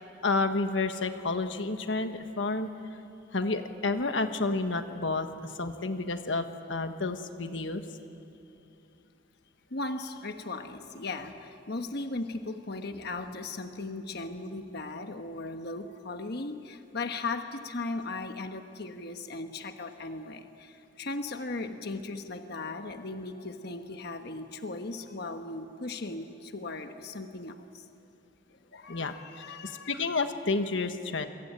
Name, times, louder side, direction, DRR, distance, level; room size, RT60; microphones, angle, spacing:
voice 1, 0.2-2.7 3.3-7.8 28.9-29.1 29.5-31.3, left 3 dB, 80° left, 7 dB, 1.4 m, -30 dB
voice 2, 9.7-27.9 28.7-30.0, left 3 dB, 55° left, 6 dB, 1.3 m, -37 dB
28.0 x 23.0 x 9.1 m, 2.7 s
head